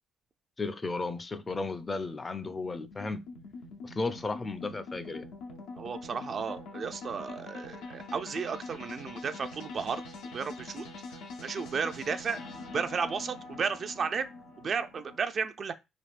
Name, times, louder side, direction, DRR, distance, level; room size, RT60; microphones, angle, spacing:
voice 1, 0.6-3.2 3.8-5.2, left 3 dB, 30° left, 0.4 m, -34 dB
sound 1, 0.9-15.2, left 3 dB, 85° left, 0.5 m, -44 dB
voice 2, 5.8-10.0 10.3-10.8 11.4-12.4 12.7-14.3 14.6-15.7, right 6 dB, 50° right, 0.3 m, -33 dB
3.4 x 2.3 x 2.4 m
supercardioid pair, 75°, 0 cm